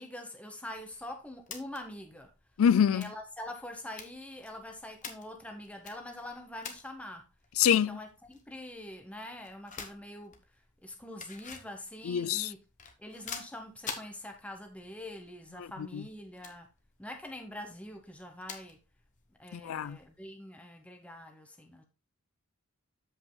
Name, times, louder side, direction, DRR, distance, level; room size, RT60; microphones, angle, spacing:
voice 1, 0.0-2.3 2.9-7.3 7.7-10.4 10.8-12.6 13.0-16.7 17.0-18.8 19.4-21.8, left 1 dB, 5° left, 1.0 m, -44 dB
sound 1, 0.7-20.2, left 6 dB, 35° left, 1.1 m, -50 dB
voice 2, 2.6-3.1 7.6-8.0 12.1-12.5 15.9-16.0 19.5-20.0, left 8 dB, 70° left, 0.4 m, -25 dB
13.5 x 5.4 x 2.2 m
head